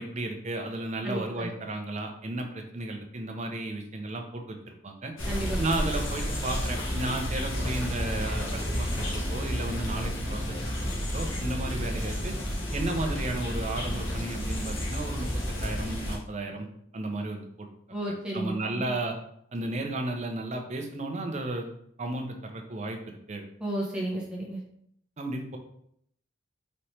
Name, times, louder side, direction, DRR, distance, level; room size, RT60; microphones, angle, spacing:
voice 1, 0.0-5.1 5.6-10.6 11.1-12.3 12.7-15.3 15.6-16.7 16.9-17.7 18.3-19.2 19.5-21.7 22.0-23.4 25.2-25.6, right 2 dB, 35° right, 3 dB, 0.6 m, -33 dB
voice 2, 1.0-1.5 5.3-5.8 17.9-18.9 23.6-24.6, right 1 dB, 5° right, -4 dB, 1.0 m, -33 dB
sound 1, 5.2-16.2, equal, 80° left, 1.2 m, -31 dB
4.1 x 2.9 x 3.2 m, 0.70 s
head